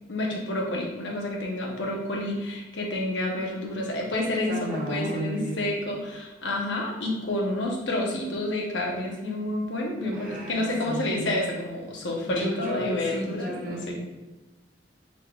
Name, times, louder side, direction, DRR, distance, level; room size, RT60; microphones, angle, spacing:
voice 1, 0.1-13.9, left 1 dB, 80° left, 0 dB, 0.8 m, -29 dB
voice 2, 4.5-5.7 10.1-11.3 12.3-14.0, right 1 dB, 50° right, -3 dB, 0.9 m, -34 dB
4.0 x 3.4 x 2.3 m, 1.1 s
head